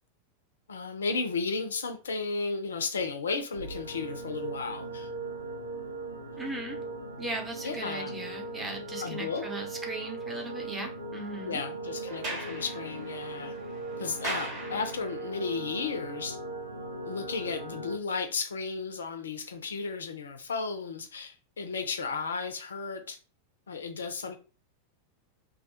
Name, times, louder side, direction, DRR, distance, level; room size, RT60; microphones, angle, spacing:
voice 1, 0.7-5.1 7.6-8.1 9.0-9.4 11.4-13.5 14.0-16.4 17.0-23.2 23.7-24.4, left 4 dB, 70° left, 0.4 m, -34 dB
sound 1, 3.5-18.0, right 2 dB, 80° right, 0.5 m, -39 dB
voice 2, 6.4-6.8 7.2-11.6, right 2 dB, 10° right, 0.7 m, -38 dB
Sliding door, 12.0-15.3, right 2 dB, 40° right, 0.9 m, -40 dB
2.2 x 2.1 x 2.7 m
figure-of-eight pair, 90°, 0 cm